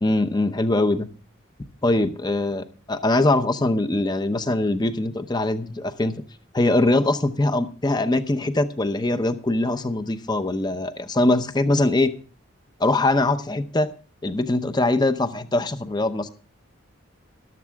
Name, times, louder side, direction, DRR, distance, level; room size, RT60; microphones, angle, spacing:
voice 1, 0.0-1.1 1.8-2.6 2.9-6.1 6.5-12.1 12.8-13.9 14.2-16.3, left 2 dB, 20° left, 11 dB, 0.7 m, -22 dB
13.5 x 12.0 x 3.5 m, 0.39 s
head